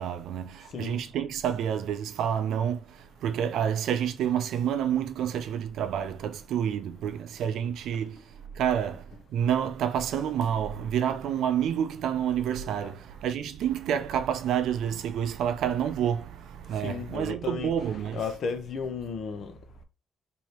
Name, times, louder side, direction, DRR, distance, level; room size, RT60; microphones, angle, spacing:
voice 1, 0.0-18.2, right 9 dB, 80° right, 0.4 m, -29 dB
voice 2, 16.8-19.5, left 5 dB, 60° left, 0.7 m, -34 dB
3.1 x 2.7 x 4.3 m
cardioid pair, 90°, 0 cm